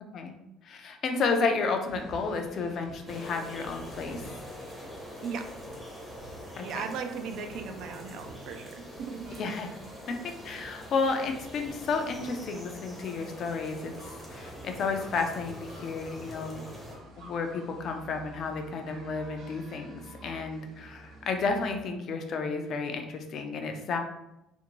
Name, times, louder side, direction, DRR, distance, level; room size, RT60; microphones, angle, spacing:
voice 1, 0.6-4.3 6.6-6.8 9.4-9.7 10.1-10.2 10.4-16.7 17.2-24.0, left 4 dB, 45° left, 5 dB, 0.4 m, -32 dB
sound 1, 1.9-21.8, right 1 dB, 80° right, 0.8 m, -49 dB
sound 2, 3.1-17.0, left 1 dB, ahead, 0.6 m, -45 dB
voice 2, 5.2-5.5 6.6-9.4, right 5 dB, 60° right, 6 dB, 0.3 m, -37 dB
2.5 x 2.5 x 2.9 m, 0.89 s
cardioid pair, 150°, 0 cm